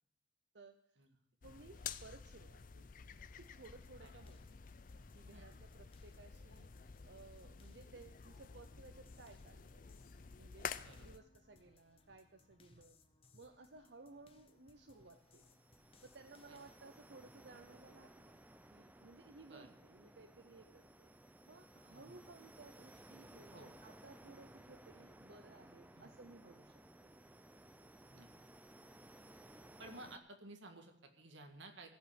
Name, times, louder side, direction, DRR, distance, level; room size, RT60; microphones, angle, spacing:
voice 1, 0.5-1.1 1.4-2.9 3.3-4.6 5.1-6.7 7.0-9.9 10.4-13.0 13.3-15.5 16.0-18.3 18.7-21.1 21.5-26.8, right 3 dB, 65° right, 8 dB, 0.7 m, -59 dB
sound 1, 1.4-11.2, left 7 dB, 45° left, 0.5 m, -51 dB
sound 2, 3.4-16.8, left 2 dB, 30° left, 1.0 m, -69 dB
voice 2, 10.8-11.2 12.8-12.9 16.5-16.6 19.5-19.7 21.9-22.2 23.5-23.7 25.9-26.1 28.1-28.3 29.8-31.9, right 2 dB, 80° right, 4 dB, 1.8 m, -55 dB
sound 3, 14.5-30.2, right 1 dB, 10° right, 0.6 m, -60 dB
14.5 x 5.6 x 8.9 m, 0.70 s
head